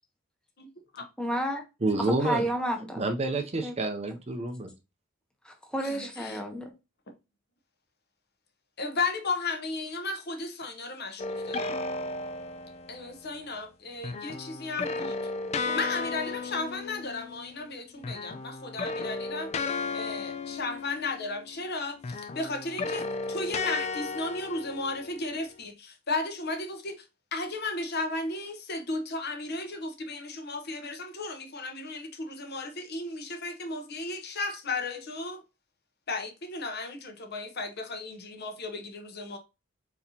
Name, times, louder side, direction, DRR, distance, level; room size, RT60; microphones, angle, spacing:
voice 1, 1.2-1.6 2.2-3.0 3.6-3.7 5.4-6.7, right 1 dB, 5° left, 0.8 m, -31 dB
voice 2, 1.8-2.5 3.0-4.7, right 2 dB, 30° right, 0.5 m, -28 dB
voice 3, 5.8-6.4 8.8-11.7 12.9-15.3 15.7-27.0 27.3-35.4 36.1-39.4, left 3 dB, 50° left, 0.9 m, -35 dB
sound 1, 11.2-13.1 14.0-17.7 18.0-21.6 22.0-25.5, left 3 dB, 30° left, 0.3 m, -34 dB
4.1 x 4.1 x 2.8 m
head